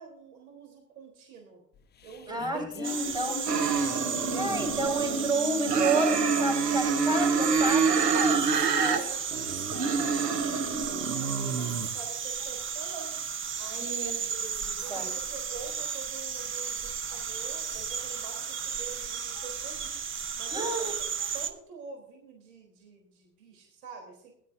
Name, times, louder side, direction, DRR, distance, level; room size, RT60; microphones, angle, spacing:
voice 1, 0.0-1.6 2.0-4.6 8.7-13.2 13.6-14.0 14.8-20.0 20.4-20.7 21.0-21.1 21.3-24.3, right 4 dB, 60° right, 2 dB, 3.8 m, -46 dB
sound 1, 1.7-8.3, left 7 dB, 20° left, 0.9 m, -43 dB
voice 2, 2.3-3.4 4.3-8.4 8.8-9.0 13.7-15.1 20.5-20.9, right 2 dB, 10° right, 0 dB, 5.4 m, -31 dB
sound 2, 2.8-21.5, right 6 dB, 25° right, 1.1 m, -34 dB
sound 3, 3.5-5.3 5.7-9.0 9.3-11.9, right 5 dB, 85° right, 1.2 m, -27 dB
19.5 x 12.0 x 2.7 m, 0.72 s
figure-of-eight pair, 85°, 48 cm